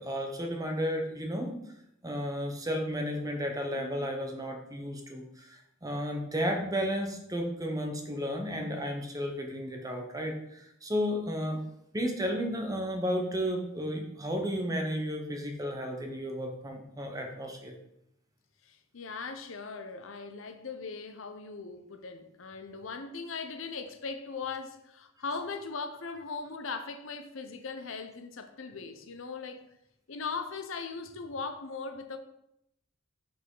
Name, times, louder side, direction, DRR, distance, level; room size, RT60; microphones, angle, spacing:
voice 1, 0.0-1.6 2.0-11.6 11.9-17.7, equal, 15° right, 2 dB, 0.9 m, -33 dB
voice 2, 3.8-4.1 18.6-29.6 30.1-32.2, left 4 dB, 70° left, 7 dB, 0.7 m, -39 dB
6.0 x 5.7 x 3.8 m, 0.79 s
head